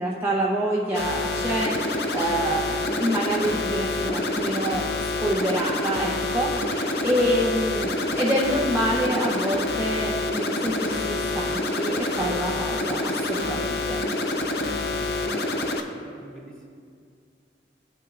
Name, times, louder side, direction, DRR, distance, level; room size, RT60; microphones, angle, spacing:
voice 1, 0.0-14.0, right 1 dB, 15° right, -5 dB, 0.6 m, -27 dB
sound 1, 0.9-15.8, left 2 dB, 60° left, 0.7 m, -27 dB
voice 2, 15.2-16.7, right 1 dB, 5° left, -5 dB, 1.9 m, -47 dB
17.0 x 6.1 x 2.4 m, 2.2 s
head